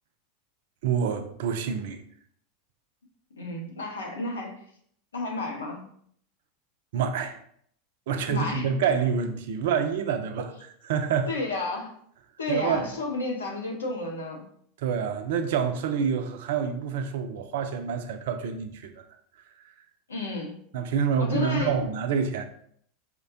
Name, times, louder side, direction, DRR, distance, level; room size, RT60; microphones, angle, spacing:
voice 1, 0.8-2.0 6.9-7.4 8.1-10.5 10.9-11.3 12.5-12.9 14.8-18.9 20.7-22.4, right 6 dB, 65° right, 7 dB, 0.4 m, -27 dB
voice 2, 3.4-4.5 5.1-5.8 8.3-8.7 11.3-11.9 12.4-14.4 20.1-20.6 21.2-21.8, left 2 dB, 85° left, -1 dB, 0.8 m, -32 dB
4.3 x 2.1 x 2.6 m, 0.64 s
hypercardioid pair, 85°, 0 cm